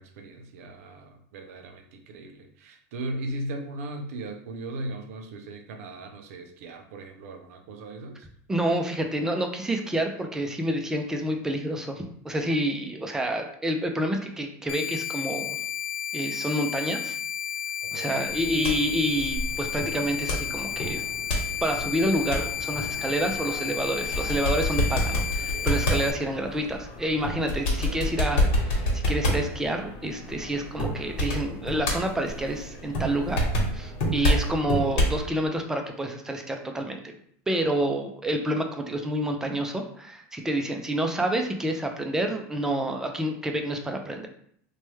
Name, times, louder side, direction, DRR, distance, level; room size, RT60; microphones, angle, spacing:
voice 1, 0.0-8.3 17.8-18.2, right 1 dB, 80° right, 4 dB, 0.5 m, -38 dB
voice 2, 8.5-15.6 16.1-17.2 17.9-21.0 21.6-33.4 33.7-37.1 37.5-44.3, right 1 dB, 5° right, 3 dB, 0.3 m, -28 dB
sound 1, 14.7-26.1, left 10 dB, 85° left, 0.4 m, -32 dB
sound 2, 18.3-35.2, equal, 65° left, 1.2 m, -29 dB
3.1 x 2.2 x 3.1 m, 0.66 s
supercardioid pair, 140°, 8 cm